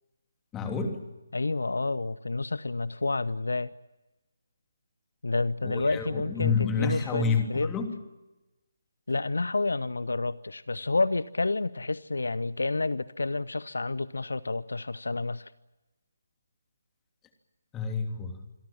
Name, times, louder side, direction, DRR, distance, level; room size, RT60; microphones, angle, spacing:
voice 1, 0.5-1.0 5.6-7.9 17.7-18.4, left 5 dB, 10° left, 3.0 m, -29 dB
voice 2, 1.3-3.7 5.2-7.2 7.5-7.7 9.1-15.5, left 3 dB, 65° left, 0.8 m, -29 dB
27.0 x 22.5 x 7.3 m
figure-of-eight pair, 145°, 0 cm